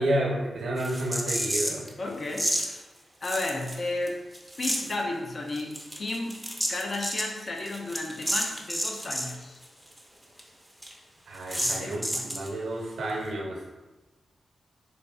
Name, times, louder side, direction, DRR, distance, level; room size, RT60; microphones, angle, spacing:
voice 1, 0.0-1.8 11.3-13.6, right 1 dB, 90° right, -2 dB, 0.8 m, -30 dB
sound 1, 0.8-1.9 2.3-2.7 3.2-4.1 4.3-4.9 5.5-9.3 9.6-9.7 10.0-10.1 10.4-10.5 10.8-10.9 11.5-12.5, equal, ahead, 0.5 m, -30 dB
voice 2, 2.0-2.9 3.2-4.2 4.6-6.4 6.7-9.6 11.6-12.5, left 2 dB, 50° left, 1 dB, 0.5 m, -33 dB
4.0 x 3.1 x 2.3 m, 1.1 s
cardioid pair, 85°, 0 cm